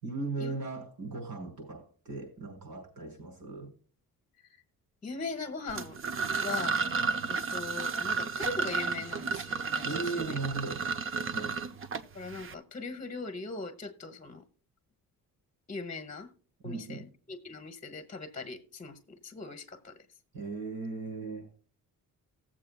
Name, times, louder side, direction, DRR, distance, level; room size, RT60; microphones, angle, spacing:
voice 1, 0.0-3.7 9.8-10.9 11.3-11.6 16.6-17.1 20.3-21.5, right 3 dB, 85° right, 5.7 m, -37 dB
voice 2, 5.0-6.0 6.4-6.8 7.3-9.8 10.1-10.4 12.1-14.4 15.7-16.3 16.6-20.0, left 3 dB, 25° left, 1.0 m, -40 dB
sound 1, 5.7-12.5, right 5 dB, 40° right, 0.6 m, -32 dB
19.0 x 7.5 x 2.3 m
cardioid pair, 135°, 35 cm